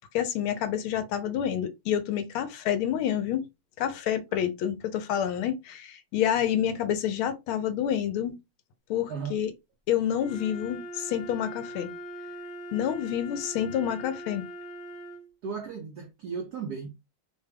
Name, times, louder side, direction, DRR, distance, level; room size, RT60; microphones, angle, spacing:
voice 1, 0.1-3.5 3.8-8.4 8.9-9.5 9.9-11.9 12.7-14.5, left 10 dB, 75° left, 1.4 m, -28 dB
Wind instrument woodwind instrument, 10.2-15.3, equal, 50° left, 0.9 m, -41 dB
voice 2, 15.4-17.0, right 6 dB, 85° right, 0.8 m, -36 dB
3.5 x 2.2 x 3.3 m
omnidirectional pair, 2.4 m